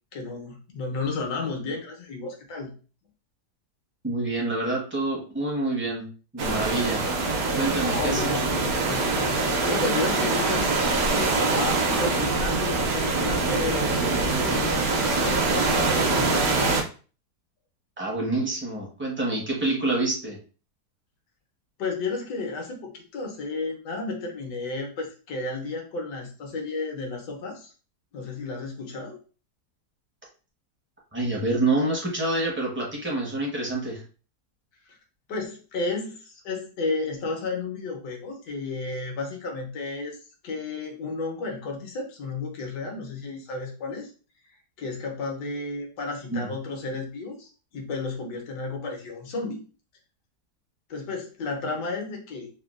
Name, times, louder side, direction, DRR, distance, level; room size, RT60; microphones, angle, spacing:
voice 1, 0.1-2.7 7.8-16.6 21.8-27.7 28.1-29.1 34.9-35.0 35.3-40.2 40.4-44.1 44.8-49.6 50.9-52.5, left 3 dB, 80° left, 1 dB, 1.4 m, -32 dB
voice 2, 4.0-6.1 6.3-7.0 7.6-8.5 18.0-20.4 31.1-34.0 46.3-46.5, right 2 dB, 15° right, -3 dB, 0.5 m, -27 dB
sound 1, 6.4-16.8, right 3 dB, 65° right, 1.1 m, -24 dB
3.5 x 2.3 x 2.4 m, 0.37 s
omnidirectional pair, 1.8 m